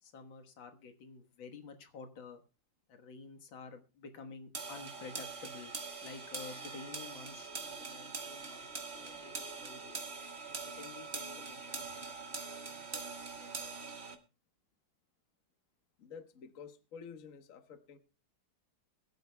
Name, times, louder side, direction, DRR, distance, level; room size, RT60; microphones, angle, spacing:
voice 1, 0.0-2.4 2.9-5.7 6.0-10.1 10.5-12.6 12.9-13.7 14.1-14.2, left 4 dB, 80° left, 6 dB, 2.1 m, -51 dB
sound 1, 4.5-14.2, right 4 dB, 35° right, 1.7 m, -43 dB
voice 2, 16.0-18.0, left 6 dB, 50° left, 8 dB, 1.4 m, -51 dB
22.5 x 12.0 x 2.2 m, 0.31 s
omnidirectional pair, 2.1 m